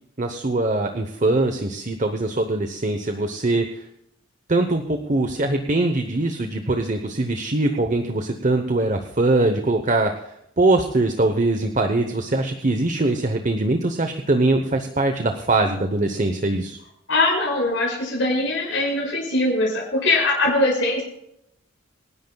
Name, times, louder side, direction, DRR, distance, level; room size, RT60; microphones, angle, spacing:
voice 1, 0.2-3.9 4.5-16.8, right 2 dB, 40° right, 6 dB, 1.0 m, -22 dB
voice 2, 17.1-21.0, left 2 dB, 70° left, -4 dB, 5.6 m, -21 dB
27.0 x 11.0 x 2.3 m, 0.78 s
head